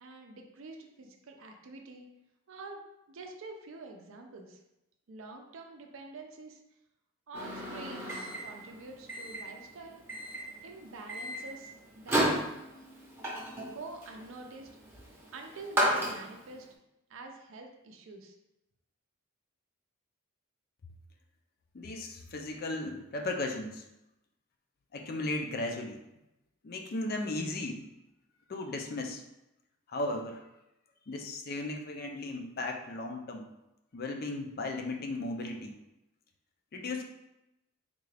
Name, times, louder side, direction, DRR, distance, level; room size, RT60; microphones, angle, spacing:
voice 1, 0.0-2.1 2.5-2.8 3.1-4.6 5.1-6.6 7.3-10.0 10.6-12.3 13.6-14.7 15.3-16.7 17.1-18.4, right 3 dB, 65° right, 2 dB, 0.4 m, -46 dB
Microwave oven, 7.3-16.6, right 1 dB, 10° right, 0.7 m, -34 dB
voice 2, 21.7-23.8 24.9-26.0 26.6-27.9 28.5-29.2 29.9-30.4 31.1-33.5 33.9-35.7 36.7-37.0, left 2 dB, 45° left, 3 dB, 0.4 m, -36 dB
3.6 x 2.4 x 3.3 m, 0.90 s
head